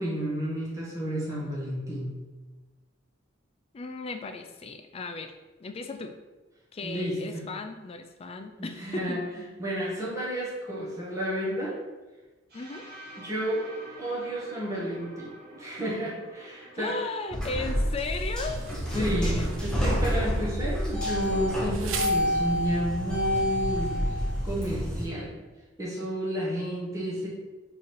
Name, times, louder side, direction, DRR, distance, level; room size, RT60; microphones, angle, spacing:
voice 1, 0.0-2.2 6.8-7.4 8.6-9.2 9.6-11.8 13.2-13.6 14.0-16.9 19.0-25.4 25.8-27.3, equal, 15° right, -6 dB, 1.1 m, -31 dB
voice 2, 3.7-5.3 5.6-6.2 6.7-9.2 12.5-12.9 16.7-18.6 18.9-19.5, left 3 dB, 30° left, 7 dB, 0.3 m, -36 dB
sound 1, 12.5-20.3, right 1 dB, 50° right, 1.4 m, -49 dB
sound 2, 17.3-25.0, equal, 5° left, 0.8 m, -28 dB
Insect, 18.0-22.9, right 7 dB, 80° right, 0.4 m, -42 dB
3.7 x 3.2 x 4.3 m, 1.2 s
head